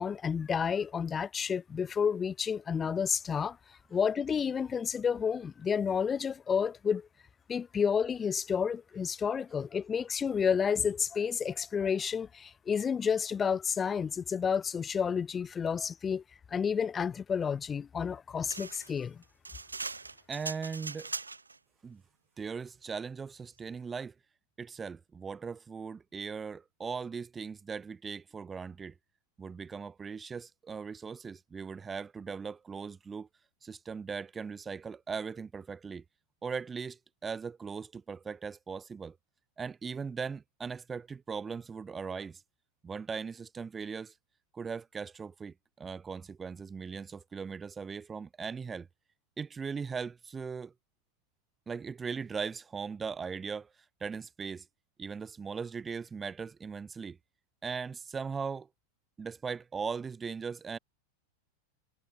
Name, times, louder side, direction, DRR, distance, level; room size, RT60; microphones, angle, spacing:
voice 1, 0.0-7.1 7.5-16.2 16.5-19.2, left 7 dB, 20° left, 0.8 m, -30 dB
sound 1, 18.4-21.6, right 4 dB, 80° right, 0.7 m, -40 dB
voice 2, 20.3-21.1 21.8-22.0 22.4-24.1 24.6-28.9 29.4-33.3 33.6-36.0 36.4-39.2 39.6-42.4 42.8-44.1 44.5-48.9 49.4-50.7 51.7-53.7 54.0-54.7 55.0-57.2 57.6-58.7 59.2-60.8, right 5 dB, 15° right, 0.6 m, -39 dB
figure-of-eight pair, 90°, 0 cm